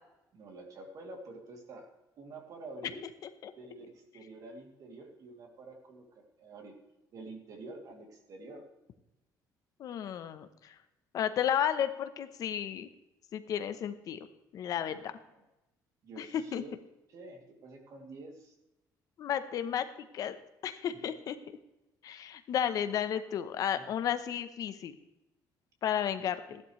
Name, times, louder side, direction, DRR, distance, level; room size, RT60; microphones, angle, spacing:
voice 1, 0.3-1.9 2.2-3.0 3.6-6.8 7.1-8.6 14.6-15.4 16.0-16.7 17.1-18.5 23.7-23.9 26.2-26.6, right 2 dB, 50° right, 2 dB, 2.7 m, -48 dB
voice 2, 9.8-10.7 11.1-12.9 13.3-14.3 14.5-15.0 16.2-16.6 19.2-19.8 20.1-20.4 20.6-21.4 22.0-25.0 25.8-26.6, left 9 dB, 55° left, 10 dB, 0.9 m, -33 dB
15.0 x 12.0 x 3.2 m, 0.96 s
cardioid pair, 160°, 7 cm